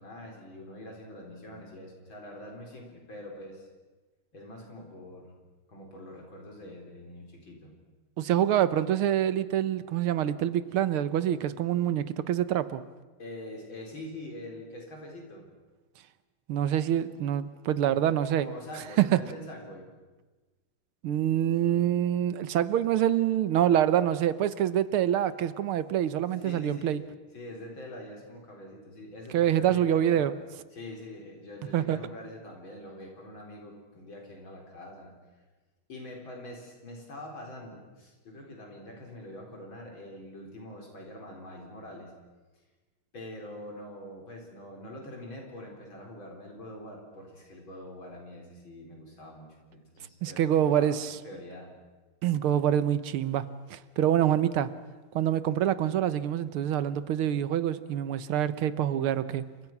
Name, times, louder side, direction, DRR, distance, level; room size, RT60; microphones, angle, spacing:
voice 1, 0.0-3.7 4.3-5.3 5.7-7.7 9.8-9.9 13.2-15.4 17.9-18.0 18.4-19.9 26.3-27.0 27.3-30.3 30.7-35.1 35.9-42.1 43.1-51.7, left 1 dB, 65° left, 1 dB, 5.1 m, -44 dB
voice 2, 8.2-12.8 16.5-18.5 19.0-19.2 21.0-27.0 29.3-30.3 31.7-32.0 50.2-51.2 52.2-54.7 55.2-59.5, right 11 dB, 85° right, 14 dB, 1.9 m, -26 dB
29.5 x 25.5 x 6.0 m, 1.3 s
omnidirectional pair, 2.3 m